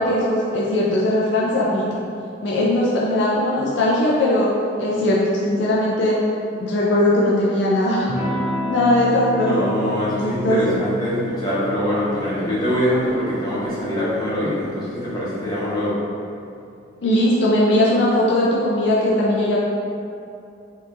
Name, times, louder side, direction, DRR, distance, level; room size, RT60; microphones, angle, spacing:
voice 1, 0.0-1.9 2.4-4.5 4.8-6.2 6.6-8.1 8.7-9.7 10.2-10.8 17.0-19.6, left 1 dB, 70° left, -5 dB, 0.5 m, -19 dB
Electric guitar / Strum, 8.1-16.4, equal, 10° right, 0.5 m, -32 dB
voice 2, 9.3-16.0, left 1 dB, 20° left, -9 dB, 0.9 m, -23 dB
4.4 x 2.9 x 2.5 m, 2.6 s
head